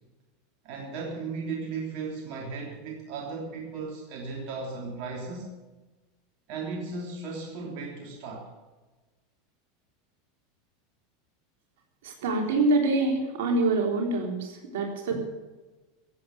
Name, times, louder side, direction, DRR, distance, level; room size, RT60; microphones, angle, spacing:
voice 1, 0.6-5.5 6.5-8.5, right 4 dB, 60° right, 0 dB, 3.2 m, -36 dB
voice 2, 12.0-15.2, right 2 dB, 75° right, 2 dB, 3.7 m, -25 dB
16.0 x 8.6 x 8.3 m, 1.2 s
hypercardioid pair, 105°, 0 cm